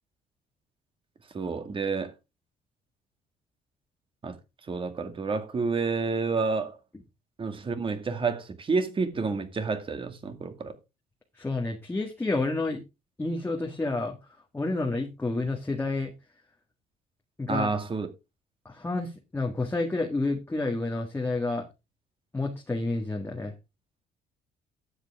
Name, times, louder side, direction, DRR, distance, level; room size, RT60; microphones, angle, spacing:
voice 1, 1.3-2.1 4.2-4.3 4.7-6.8 7.4-10.7 17.5-18.1, right 4 dB, 30° right, 2.2 m, -29 dB
voice 2, 11.4-12.8 13.2-14.2 14.5-16.1 17.4-17.7 18.6-21.7 22.3-23.5, left 2 dB, 15° left, 1.6 m, -29 dB
12.5 x 8.1 x 3.5 m
cardioid pair, 110°, 17 cm